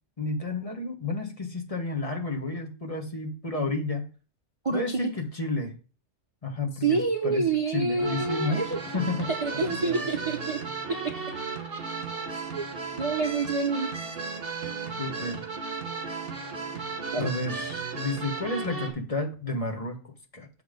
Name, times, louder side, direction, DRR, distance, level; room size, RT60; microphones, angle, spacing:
voice 1, 0.2-4.0 4.7-5.8 6.4-8.6 8.9-10.0 15.0-15.4 17.2-20.5, left 2 dB, 30° left, 2 dB, 1.4 m, -31 dB
voice 2, 4.6-5.1 6.8-8.8 9.3-10.6 12.3-12.7 13.0-13.9 17.1-17.3, right 4 dB, 30° right, 3 dB, 0.8 m, -27 dB
sound 1, 8.0-18.9, right 4 dB, 65° right, 2.0 m, -35 dB
7.1 x 5.8 x 5.0 m, 0.35 s
omnidirectional pair, 1.3 m